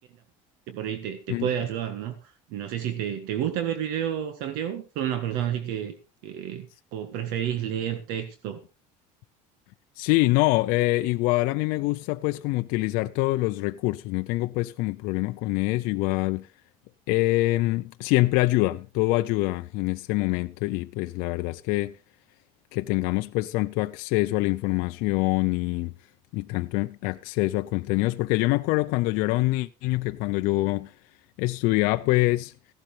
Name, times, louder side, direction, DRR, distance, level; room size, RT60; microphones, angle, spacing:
voice 1, 0.7-5.9 6.2-8.6, right 10 dB, 75° right, 1.6 m, -30 dB
voice 2, 10.0-16.5 17.1-22.0 22.7-25.9 26.3-30.9 31.4-32.5, left 20 dB, 65° left, 0.6 m, -25 dB
16.0 x 12.0 x 3.4 m
cardioid pair, 160°, 16 cm